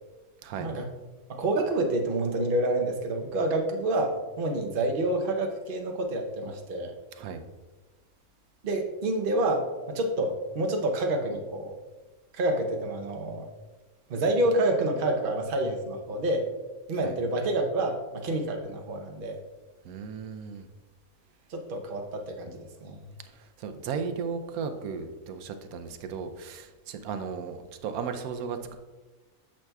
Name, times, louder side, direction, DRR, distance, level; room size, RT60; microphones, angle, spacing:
voice 1, 1.3-6.9 8.6-11.8 12.3-13.5 14.1-16.5 16.9-19.4 21.5-23.0, right 1 dB, 45° right, 3 dB, 0.8 m, -28 dB
voice 2, 19.8-20.7 23.3-28.8, right 6 dB, 75° right, 7 dB, 1.1 m, -35 dB
8.8 x 6.0 x 2.3 m, 1.2 s
omnidirectional pair, 1.6 m